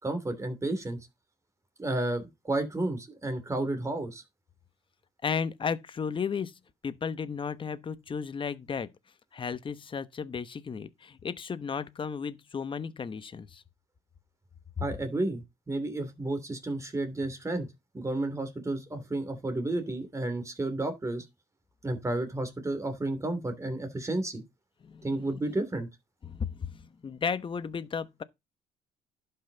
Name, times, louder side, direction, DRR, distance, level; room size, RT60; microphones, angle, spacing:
voice 1, 0.0-1.0 1.8-4.2 14.8-17.7 17.9-21.3 21.8-24.4 25.0-25.9, right 2 dB, 15° right, 2.8 m, -32 dB
voice 2, 5.2-6.5 6.8-8.9 9.3-13.6 14.8-14.9 24.8-25.0 26.2-28.2, left 6 dB, 30° left, 0.9 m, -34 dB
11.5 x 5.7 x 3.9 m
cardioid pair, 110°, 17 cm